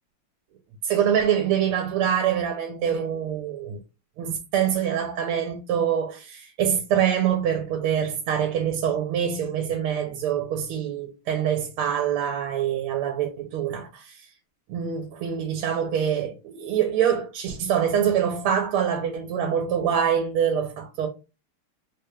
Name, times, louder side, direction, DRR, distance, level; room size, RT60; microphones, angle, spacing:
voice 1, 0.8-3.8 4.2-14.3 14.7-21.1, right 9 dB, 85° right, 1.5 m, -25 dB
4.0 x 2.2 x 3.2 m
omnidirectional pair, 2.4 m